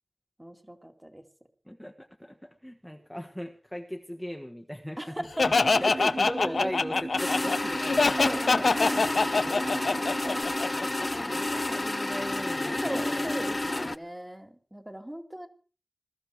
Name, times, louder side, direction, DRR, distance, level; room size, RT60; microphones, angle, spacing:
voice 1, 0.4-1.3 5.0-6.7 8.2-9.8 12.8-15.5, right 1 dB, 15° right, 4 dB, 2.5 m, -38 dB
voice 2, 1.7-5.5 5.8-8.2 8.7-8.8 9.4-9.5 10.5-13.3, equal, 5° left, 3 dB, 1.4 m, -38 dB
Laughter, 5.4-11.0, left 4 dB, 70° left, 0.9 m, -24 dB
sound 1, 5.4-10.4, right 3 dB, 50° right, 2.6 m, -39 dB
sound 2, 7.2-14.0, left 2 dB, 30° left, 0.8 m, -30 dB
21.0 x 14.0 x 4.7 m, 0.39 s
wide cardioid pair, 90°, 0 cm